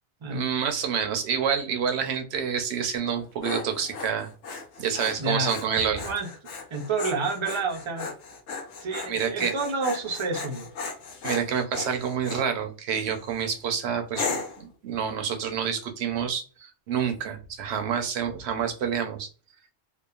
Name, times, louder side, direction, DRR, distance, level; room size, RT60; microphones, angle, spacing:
voice 1, 0.3-4.3 4.8-6.1 9.1-9.5 11.2-14.4 14.8-16.4 16.9-19.3, right 7 dB, 70° right, 6 dB, 0.8 m, -28 dB
Dog, 3.0-12.5 13.0-13.4 14.1-14.7, left 4 dB, 80° left, 0.9 m, -36 dB
voice 2, 5.2-5.5 6.0-6.3 6.7-8.1 8.8-10.7, right 3 dB, 45° right, 2 dB, 0.4 m, -29 dB
2.9 x 2.2 x 2.3 m, 0.35 s
omnidirectional pair, 1.2 m